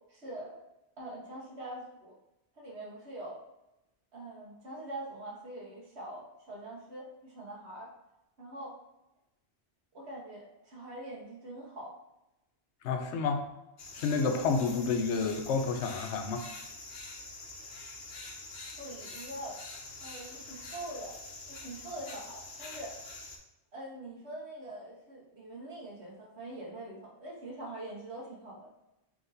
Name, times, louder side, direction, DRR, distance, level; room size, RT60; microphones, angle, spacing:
voice 1, 0.1-0.6 1.0-2.1 2.6-3.4 4.1-7.9 8.4-8.8 9.9-12.0 18.8-19.6 20.0-21.2 21.5-22.9 23.7-28.7, right 1 dB, 75° right, -4 dB, 1.5 m, -43 dB
voice 2, 12.8-13.5 13.9-16.4, left 4 dB, 90° left, 5 dB, 0.9 m, -29 dB
sound 1, 13.8-23.4, left 3 dB, 70° left, 1.1 m, -45 dB
4.5 x 2.6 x 3.9 m, 0.91 s
omnidirectional pair, 1.1 m